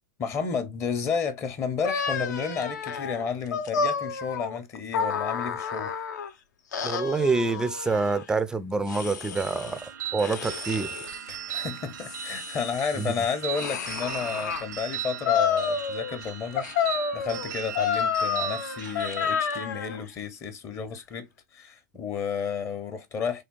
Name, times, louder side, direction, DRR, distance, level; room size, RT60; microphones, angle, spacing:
voice 1, 0.2-6.0 11.3-21.3 21.5-23.4, left 6 dB, 30° left, 0.6 m, -32 dB
sound 1, 1.8-6.3 6.7-8.2 8.9-9.8 10.2-11.2 11.8-14.6 15.2-16.2 16.6-20.0, left 6 dB, 80° left, 0.7 m, -30 dB
voice 2, 6.8-10.9 13.0-13.1, right 3 dB, 5° right, 0.3 m, -27 dB
sound 2, 9.4-19.6, right 10 dB, 80° right, 0.7 m, -38 dB
3.4 x 2.3 x 3.6 m
hypercardioid pair, 125°, 10 cm